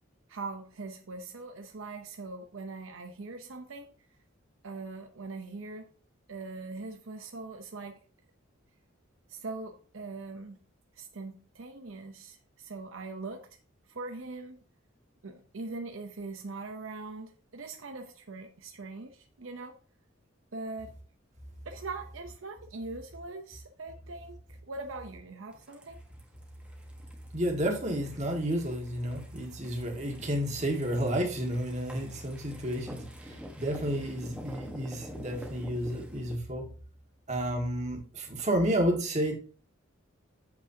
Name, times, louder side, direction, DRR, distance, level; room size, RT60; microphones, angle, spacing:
voice 1, 0.3-3.9 4.6-5.9 6.3-8.0 9.3-10.6 10.9-13.5 13.9-14.6 15.2-19.8 20.5-20.9 21.6-24.4 24.6-26.1, right 3 dB, 75° right, 0.8 m, -41 dB
sound 1, 25.5-36.4, equal, 5° right, 1.2 m, -48 dB
voice 2, 27.3-36.7 37.3-39.4, equal, 35° right, 1.8 m, -31 dB
8.5 x 7.4 x 2.8 m
head